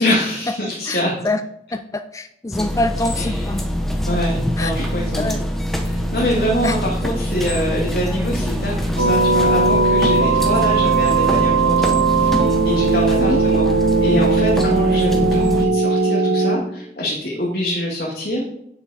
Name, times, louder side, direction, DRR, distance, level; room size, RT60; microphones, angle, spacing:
voice 1, 0.0-1.1 3.2-3.5 4.1-5.4 5.8-13.7 14.0-18.4, equal, 55° left, -4 dB, 2.2 m, -24 dB
voice 2, 0.9-1.4 1.7-3.6 4.6-4.7 5.2-5.4 6.6-6.7 13.2-13.4, left 2 dB, 20° left, 8 dB, 0.4 m, -25 dB
sound 1, 2.5-15.7, equal, ahead, 0.9 m, -23 dB
sound 2, 9.0-16.6, right 4 dB, 75° right, 1.2 m, -18 dB
9.7 x 6.9 x 4.3 m, 0.75 s
head